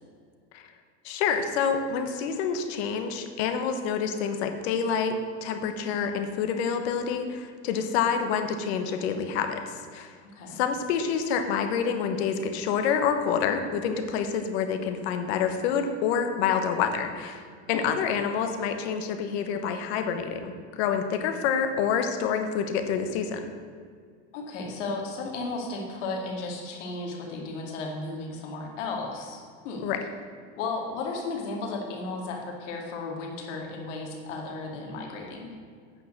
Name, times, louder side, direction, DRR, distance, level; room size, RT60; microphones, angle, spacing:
voice 1, 1.0-10.1 10.5-23.4 29.8-30.0, left 7 dB, 65° left, 7 dB, 1.2 m, -27 dB
voice 2, 10.2-10.6 17.7-17.9 24.3-29.9 30.6-35.5, left 3 dB, 85° left, 0 dB, 2.4 m, -34 dB
9.1 x 6.4 x 6.6 m, 2.1 s
supercardioid pair, 165°, 35 cm